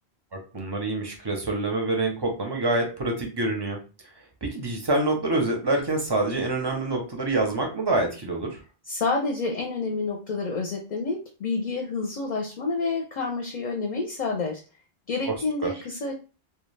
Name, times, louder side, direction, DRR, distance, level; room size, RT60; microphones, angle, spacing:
voice 1, 0.3-3.8 4.4-8.6 15.3-15.4 15.6-15.7, right 2 dB, 30° right, 2 dB, 0.5 m, -26 dB
voice 2, 8.9-14.6 15.1-16.1, left 3 dB, 55° left, 2 dB, 0.6 m, -29 dB
2.3 x 2.2 x 3.1 m, 0.33 s
omnidirectional pair, 1.0 m